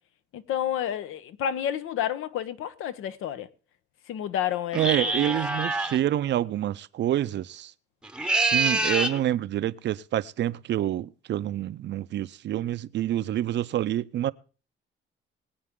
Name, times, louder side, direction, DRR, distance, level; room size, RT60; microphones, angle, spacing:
voice 1, 0.3-3.5 4.1-5.3, left 10 dB, 80° left, 1.0 m, -30 dB
sound 1, 4.7-6.0 8.0-9.2, right 3 dB, 5° right, 0.8 m, -25 dB
voice 2, 4.7-7.7 8.3-14.3, right 12 dB, 60° right, 0.6 m, -27 dB
22.5 x 8.7 x 3.7 m
cardioid pair, 130°, 21 cm